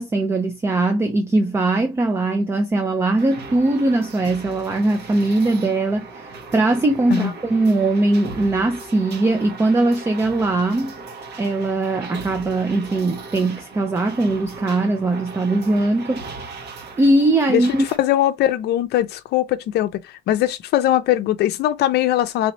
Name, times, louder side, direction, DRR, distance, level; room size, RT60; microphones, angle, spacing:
voice 1, 0.0-11.0 11.4-16.6 17.0-17.8, right 2 dB, 15° right, 0.4 m, -20 dB
sound 1, 3.2-18.0, right 3 dB, 60° right, 1.3 m, -37 dB
voice 2, 18.0-20.0 20.3-22.5, left 13 dB, 60° left, 0.6 m, -20 dB
3.4 x 3.0 x 4.0 m
cardioid pair, 170°, 19 cm